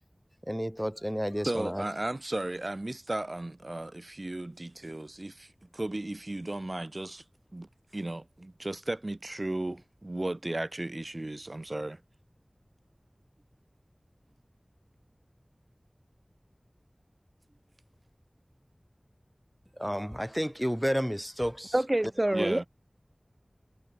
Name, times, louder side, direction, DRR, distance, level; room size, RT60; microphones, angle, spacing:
voice 1, 0.5-1.8 19.8-21.7 22.4-22.5, equal, 5° right, 1.0 m, -31 dB
voice 2, 1.4-7.2 7.5-12.0 22.3-22.7, right 2 dB, 55° right, 5.9 m, -35 dB
voice 3, 21.7-22.6, right 1 dB, 35° right, 2.3 m, -26 dB
wide cardioid pair, 40°, 0 cm